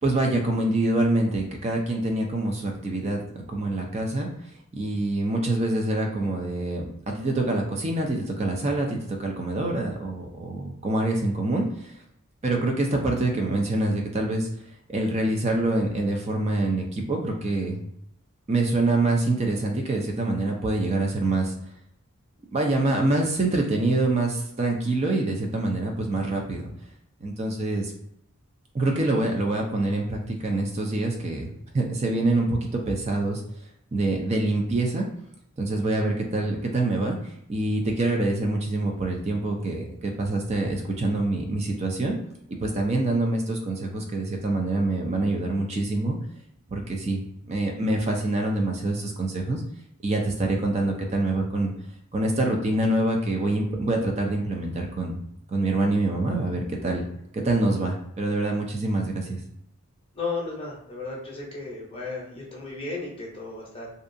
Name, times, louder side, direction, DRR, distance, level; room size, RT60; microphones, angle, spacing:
voice 1, 0.0-4.3 4.7-11.9 12.4-14.5 14.9-17.8 18.5-21.5 22.5-26.7 27.2-27.9 28.7-33.4 33.9-35.1 35.6-37.2 37.5-42.2 42.5-46.2 46.7-47.2 47.5-49.6 50.0-51.7 52.1-55.2 55.5-57.0 57.3-59.4, right 2 dB, 30° right, 1 dB, 0.4 m, -25 dB
voice 2, 60.1-63.9, left 3 dB, 25° left, -4 dB, 0.6 m, -34 dB
2.6 x 2.3 x 2.5 m, 0.75 s
head